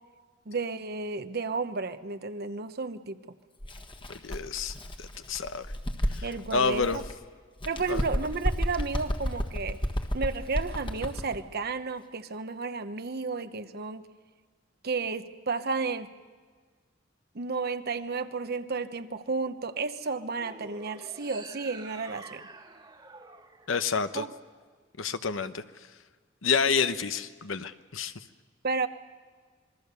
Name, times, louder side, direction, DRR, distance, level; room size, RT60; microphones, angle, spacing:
voice 1, 0.5-3.2 6.2-7.0 7.6-9.8 10.1-14.0 14.8-16.1 17.3-22.4 24.1-24.3 28.6-28.9, right 4 dB, 55° right, 10 dB, 0.9 m, -32 dB
Bird, 3.6-7.2 7.6-11.4, equal, 25° left, 1.5 m, -32 dB
voice 2, 4.1-5.7 6.1-6.3 6.5-7.0 7.9-8.0 23.7-24.2 25.0-25.6 26.4-28.1, left 5 dB, 80° left, 10 dB, 0.9 m, -29 dB
sound 1, 20.3-24.7, right 3 dB, 25° right, 1.7 m, -48 dB
26.5 x 21.5 x 6.9 m, 1.5 s
head